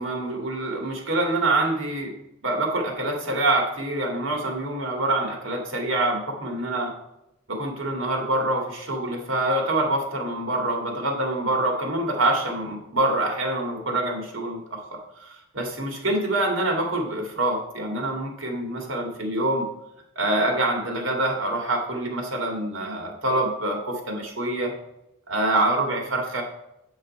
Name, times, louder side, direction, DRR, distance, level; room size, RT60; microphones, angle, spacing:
voice 1, 0.0-2.1 2.4-6.9 7.5-19.7 20.2-24.7 25.3-26.4, right 2 dB, 80° right, 1 dB, 2.3 m, -25 dB
8.5 x 5.6 x 4.8 m, 0.86 s
head